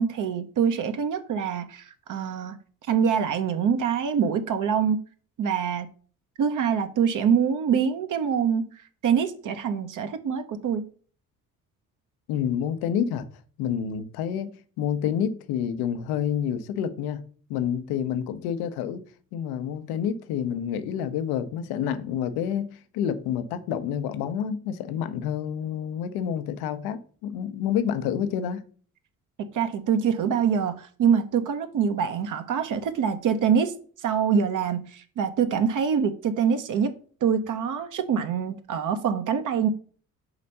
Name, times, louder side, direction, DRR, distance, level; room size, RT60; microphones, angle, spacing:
voice 1, 0.0-2.6 2.9-5.0 5.4-5.9 6.4-8.7 9.0-10.9 29.5-33.7 34.0-36.9 37.2-39.7, right 7 dB, 50° right, 0.8 m, -25 dB
voice 2, 12.3-13.3 13.6-17.2 17.5-19.0 19.3-28.6, left 9 dB, 65° left, 0.8 m, -28 dB
5.0 x 4.1 x 5.5 m
figure-of-eight pair, 45°, 40 cm